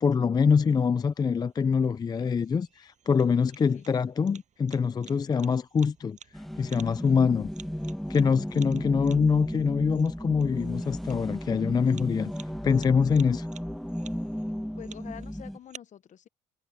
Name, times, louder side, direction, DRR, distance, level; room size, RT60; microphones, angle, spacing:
voice 1, 0.0-6.2 6.6-7.5 8.1-12.3 12.6-13.5, left 6 dB, 25° left, 0.4 m, -24 dB
sound 1, 0.8-15.8, right 8 dB, 45° right, 6.6 m, -54 dB
sound 2, 6.3-15.6, equal, ahead, 1.1 m, -34 dB
voice 2, 14.8-16.3, left 10 dB, 45° left, 1.0 m, -46 dB
cardioid pair, 110°, 17 cm